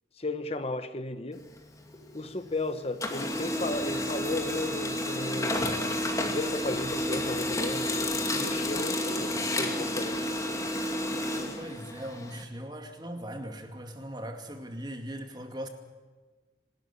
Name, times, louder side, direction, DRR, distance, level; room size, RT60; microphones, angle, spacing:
voice 1, 0.2-1.4 2.1-5.6 6.2-10.3, left 2 dB, 35° left, 10 dB, 1.0 m, -34 dB
Printer, 1.3-2.6 2.9-12.4, left 1 dB, 20° left, 2.4 m, -31 dB
voice 2, 11.5-15.7, equal, 25° right, 5 dB, 2.4 m, -39 dB
25.5 x 13.0 x 9.8 m, 1.4 s
head